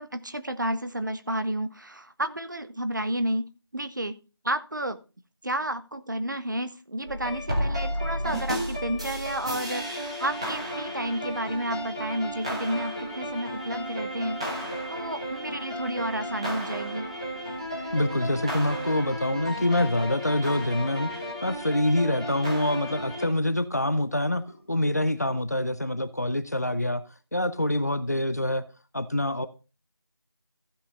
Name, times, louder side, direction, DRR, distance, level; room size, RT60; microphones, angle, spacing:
voice 1, 0.0-4.2 4.4-5.0 5.4-17.1, right 1 dB, 45° right, 0.9 m, -31 dB
sound 1, 7.0-23.3, equal, 15° right, 1.4 m, -33 dB
sound 2, 7.2-9.9 10.3-13.4 13.7-13.8 14.2-17.7 18.3-25.4, right 1 dB, 30° right, 1.6 m, -51 dB
voice 2, 17.9-21.1 21.4-27.0 27.3-28.6 28.9-29.5, left 1 dB, 40° left, 0.7 m, -26 dB
15.0 x 5.6 x 4.0 m
figure-of-eight pair, 175°, 14 cm